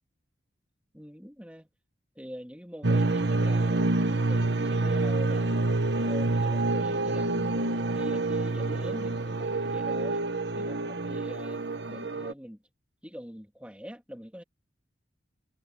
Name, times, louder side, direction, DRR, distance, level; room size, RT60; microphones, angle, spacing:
voice 1, 0.9-1.7 2.1-5.7 6.0-7.5 7.9-10.2 10.6-11.6 11.9-12.6 13.0-14.4, equal, 5° right, 3.3 m, -43 dB
sound 1, 2.8-12.3, right 2 dB, 70° right, 1.2 m, -27 dB
head